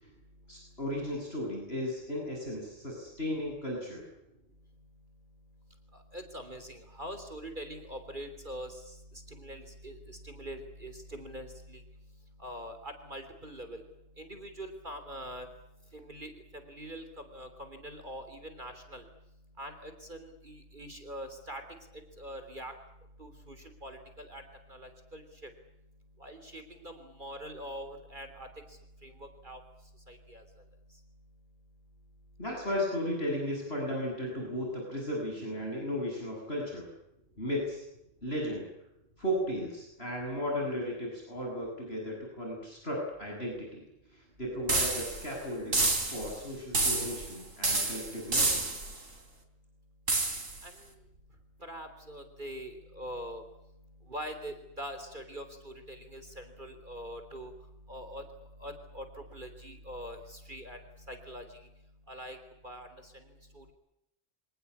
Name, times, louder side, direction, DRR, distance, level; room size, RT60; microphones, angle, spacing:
voice 1, 0.5-4.0 32.4-36.9 37.4-37.8 38.2-38.7 39.2-43.8 44.1-48.6, equal, 50° left, -1 dB, 8.1 m, -35 dB
voice 2, 5.9-9.0 9.3-11.8 12.4-13.8 14.2-15.5 15.9-17.1 17.3-19.0 19.6-21.6 22.2-22.7 23.2-24.4 24.7-25.5 26.2-28.5 29.0-29.6 30.1-30.4 50.6-50.7 51.6-53.4 54.1-57.5 57.9-58.2 58.6-60.8 61.1-61.4 62.1-62.4 62.6-63.1 63.6-63.7, equal, 40° right, 7 dB, 3.6 m, -43 dB
sound 1, 44.7-45.3 45.7-46.4 46.7-47.3 47.6-49.0 50.1-50.6, right 2 dB, 85° right, 4.2 m, -29 dB
26.5 x 18.5 x 10.0 m, 0.84 s
omnidirectional pair, 1.3 m